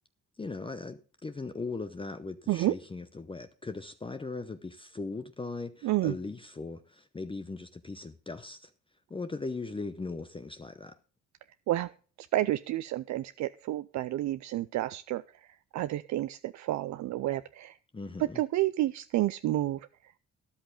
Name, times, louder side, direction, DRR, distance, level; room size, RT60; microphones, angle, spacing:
voice 1, 0.4-8.7 9.1-11.0 17.9-18.4, left 3 dB, 15° left, 0.7 m, -39 dB
voice 2, 5.8-6.1 11.7-11.9 12.3-17.8 18.2-20.2, right 15 dB, 70° right, 0.5 m, -30 dB
13.0 x 10.5 x 3.8 m
cardioid pair, 90°, 30 cm